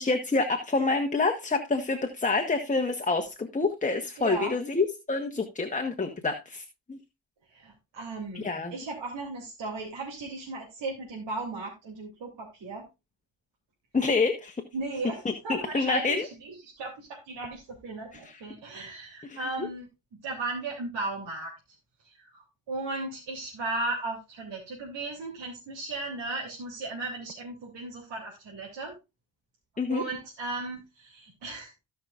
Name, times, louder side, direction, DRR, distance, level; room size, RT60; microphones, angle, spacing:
voice 1, 0.0-7.0 8.3-8.7 13.9-14.6 15.2-16.3 18.1-18.4 19.2-19.4 29.8-30.0, left 3 dB, 15° left, 6 dB, 1.2 m, -27 dB
voice 2, 4.2-4.5 7.5-8.4 8.7-12.8 14.7-19.9 20.2-21.5 22.0-28.9 29.9-31.7, right 3 dB, 65° right, -3 dB, 3.2 m, -36 dB
17.0 x 5.8 x 2.5 m, 0.25 s
supercardioid pair, 60°, 45 cm